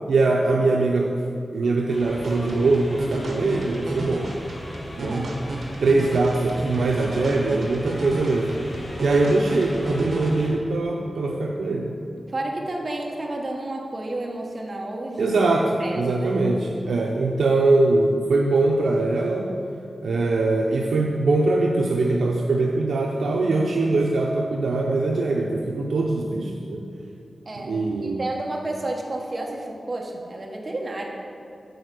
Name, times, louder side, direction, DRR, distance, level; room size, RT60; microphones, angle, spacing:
voice 1, 0.1-1.1 1.5-4.3 5.0-5.4 5.8-8.6 9.0-12.0 15.2-19.5 20.0-26.8 27.6-28.2, right 2 dB, 90° right, 0 dB, 0.5 m, -22 dB
sound 1, 1.9-10.5, left 1 dB, 50° left, 2.0 m, -38 dB
sound 2, 2.2-10.3, right 1 dB, 75° right, 1.1 m, -34 dB
voice 2, 5.0-5.4 12.3-15.4 15.8-16.3 27.4-27.8 28.2-31.1, right 2 dB, 35° right, -1 dB, 1.0 m, -31 dB
7.8 x 4.7 x 6.7 m, 2.7 s
wide cardioid pair, 125°, 0 cm